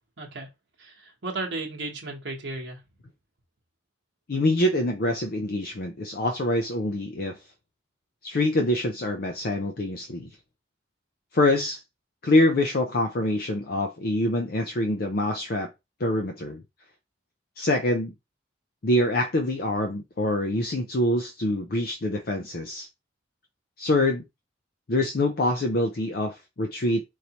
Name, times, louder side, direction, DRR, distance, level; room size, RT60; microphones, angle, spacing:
voice 1, 0.2-0.5 0.8-2.8, right 3 dB, 60° right, 1.0 m, -34 dB
voice 2, 4.3-7.4 8.2-10.3 11.3-11.8 12.2-15.7 16.0-16.6 17.6-18.1 18.8-22.9 23.8-24.2 24.9-27.0, left 1 dB, 50° left, 0.5 m, -25 dB
4.7 x 2.6 x 2.8 m
head